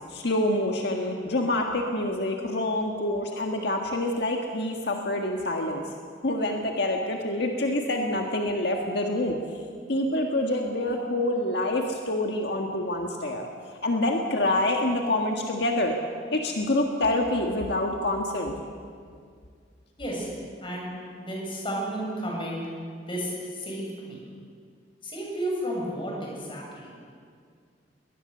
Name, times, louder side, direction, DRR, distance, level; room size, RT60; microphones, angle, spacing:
voice 1, 0.1-5.8 6.2-9.4 9.9-13.5 13.8-15.9 16.3-18.5, left 1 dB, 65° left, 2 dB, 1.7 m, -26 dB
voice 2, 20.0-20.3 20.6-20.9 21.2-22.6 23.0-24.2 25.0-26.9, right 1 dB, 30° left, -3 dB, 7.0 m, -32 dB
21.5 x 19.5 x 6.8 m, 2.1 s
head